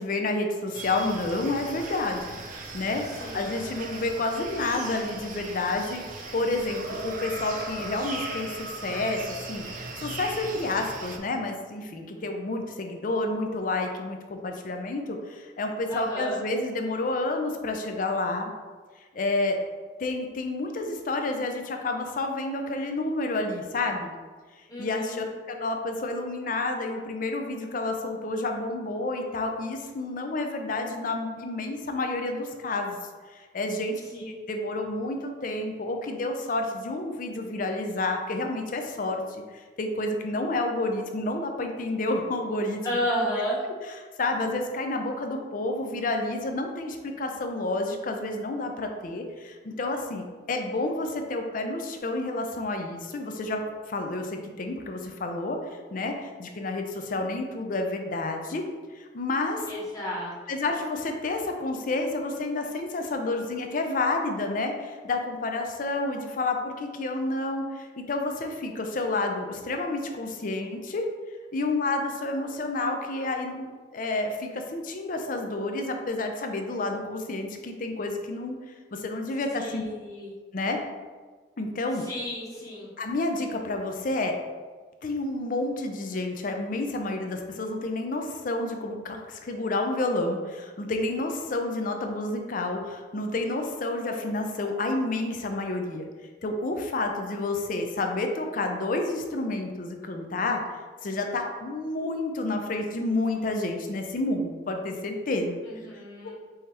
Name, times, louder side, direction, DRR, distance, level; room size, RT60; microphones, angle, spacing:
voice 1, 0.0-2.3 2.7-3.0 3.3-6.0 6.3-9.2 9.5-18.5 19.1-19.6 20.0-24.1 24.8-33.0 33.3-34.0 34.2-42.8 44.2-53.6 53.9-55.6 55.9-56.1 56.4-58.6 58.9-59.6 60.5-71.0 71.5-78.6 78.9-79.8 80.5-80.8 81.6-82.0 83.0-84.3 85.0-96.1 96.4-100.6 101.0-105.6, left 2 dB, 50° left, 4 dB, 0.5 m, -30 dB
sound 1, 0.7-11.2, right 2 dB, 50° right, 0.6 m, -38 dB
voice 2, 15.9-16.4 24.7-25.2 34.1-34.3 42.8-43.6 59.7-60.3 79.6-80.3 82.0-82.9 105.7-106.3, equal, 20° left, -6 dB, 1.2 m, -32 dB
5.5 x 2.9 x 3.3 m, 1.4 s
head